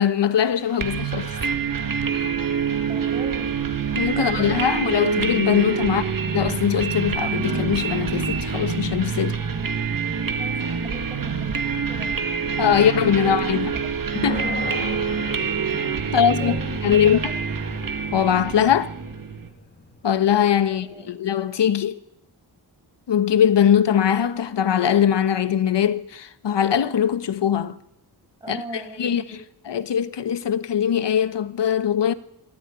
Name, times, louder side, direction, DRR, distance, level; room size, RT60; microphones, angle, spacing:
voice 1, 0.0-1.4 2.1-2.3 3.9-6.0 6.3-9.4 12.6-13.7 14.1-14.4 16.1-16.6 16.8-17.2 18.1-18.9 20.0-22.0 23.1-27.8 28.5-29.4 29.6-32.1, left 9 dB, 75° left, 1.3 m, -21 dB
sound 1, 0.8-19.5, right 6 dB, 50° right, 2.0 m, -26 dB
voice 2, 2.9-3.5 4.2-4.9 10.1-12.1 12.5-13.9 14.4-14.9 16.0-17.4 20.7-21.1 28.4-29.4, equal, 10° right, 7.9 m, -39 dB
sound 2, 14.2-21.1, left 3 dB, 25° left, 2.5 m, -39 dB
23.0 x 14.5 x 10.0 m
wide cardioid pair, 140°, 43 cm